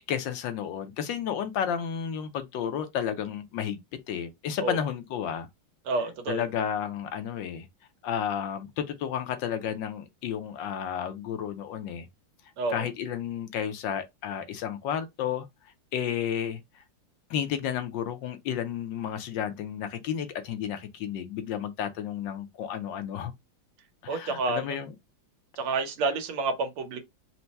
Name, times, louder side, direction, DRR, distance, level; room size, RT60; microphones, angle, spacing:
voice 1, 0.1-3.8 4.1-5.5 6.3-7.7 8.0-12.1 12.7-15.5 15.9-16.8 17.3-23.3 24.0-24.9, left 8 dB, 70° left, 1.2 m, -32 dB
voice 2, 5.9-6.4 12.6-12.9 24.1-24.6 25.6-27.0, right 3 dB, 85° right, 1.8 m, -29 dB
4.5 x 2.1 x 4.0 m
omnidirectional pair, 2.3 m